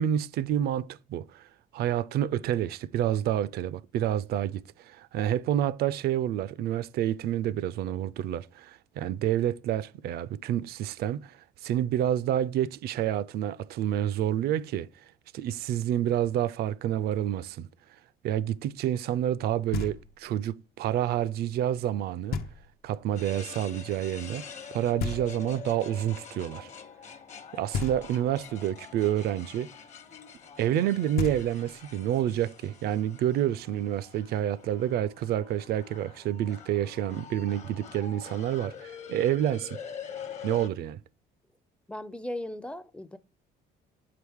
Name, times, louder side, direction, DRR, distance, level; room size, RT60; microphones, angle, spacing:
voice 1, 0.0-1.4 1.7-11.4 11.6-14.9 15.3-17.7 18.2-22.4 22.8-24.4 24.7-26.7 27.5-29.7 30.6-39.8 40.4-41.0, right 11 dB, 65° right, 0.4 m, -28 dB
Knock, 19.7-20.4 22.3-23.0 25.0-25.8 27.7-28.5 30.8-30.9 31.2-32.0, left 6 dB, 70° left, 0.7 m, -35 dB
sound 1, 23.1-40.7, left 7 dB, 45° left, 1.0 m, -45 dB
voice 2, 41.9-43.2, left 1 dB, 5° left, 0.4 m, -37 dB
7.4 x 4.8 x 3.5 m
cardioid pair, 110°, 17 cm